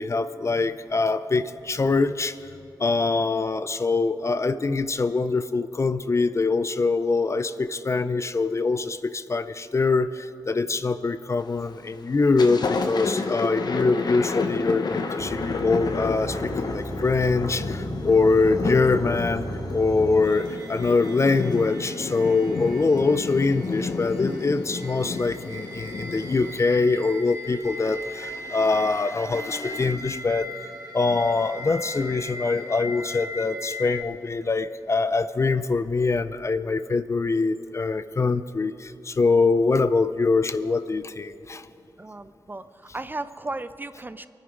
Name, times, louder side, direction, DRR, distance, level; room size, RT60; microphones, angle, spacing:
voice 1, 0.0-2.4 2.8-19.5 19.7-30.5 30.9-41.6, left 3 dB, 40° left, 13 dB, 0.5 m, -24 dB
Thunder, 11.4-11.8 12.2-26.6, left 4 dB, 65° left, 1.1 m, -30 dB
sound 1, 15.2-34.0, right 1 dB, 50° right, 3.5 m, -38 dB
voice 2, 42.0-44.3, right 2 dB, 25° right, 12 dB, 0.6 m, -35 dB
24.0 x 9.7 x 5.1 m, 2.7 s
cardioid pair, 65°, 8 cm